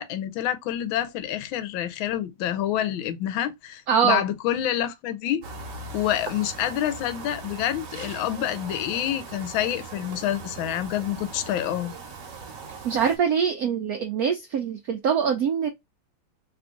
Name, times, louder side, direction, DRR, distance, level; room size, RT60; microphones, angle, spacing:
voice 1, 0.0-5.4 5.9-11.9, left 11 dB, 80° left, 1.3 m, -27 dB
voice 2, 3.9-4.2 12.8-15.7, right 7 dB, 80° right, 0.8 m, -23 dB
sound 1, 5.4-13.2, right 4 dB, 50° right, 1.1 m, -40 dB
3.4 x 2.4 x 3.7 m
omnidirectional pair, 2.2 m